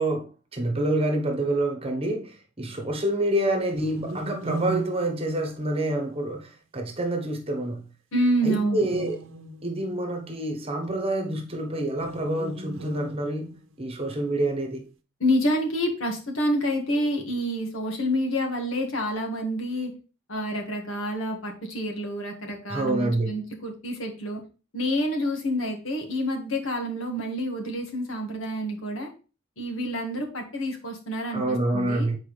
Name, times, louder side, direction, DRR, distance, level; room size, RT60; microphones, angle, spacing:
voice 1, 0.0-7.8 8.4-9.2 9.6-14.9 22.7-23.3 31.3-32.2, right 1 dB, 30° right, 1.1 m, -27 dB
sound 1, 3.7-6.0 8.8-10.1 11.9-13.8, right 2 dB, 75° right, 0.8 m, -37 dB
voice 2, 8.1-8.9 15.2-19.9 20.3-24.4 24.7-29.1 29.6-32.1, equal, 75° left, 1.7 m, -28 dB
8.2 x 4.6 x 3.3 m
head